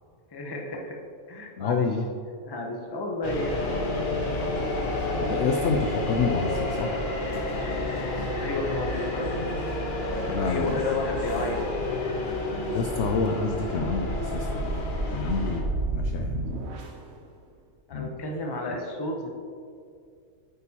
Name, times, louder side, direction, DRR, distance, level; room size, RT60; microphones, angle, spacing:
voice 1, 0.3-1.0 1.3-1.9 2.4-3.7 8.4-9.6 10.4-11.6 17.9-19.3, left 2 dB, 25° left, 1 dB, 0.6 m, -32 dB
voice 2, 1.6-2.1 5.2-6.9 10.3-10.8 12.7-14.8 15.1-16.4 17.9-18.1, left 5 dB, 70° left, 5 dB, 0.7 m, -28 dB
sound 1, 3.2-15.6, left 2 dB, 40° left, 1.0 m, -30 dB
sound 2, 12.9-17.1, right 2 dB, 55° right, 0.8 m, -32 dB
8.7 x 8.3 x 2.9 m, 2.3 s
omnidirectional pair, 1.6 m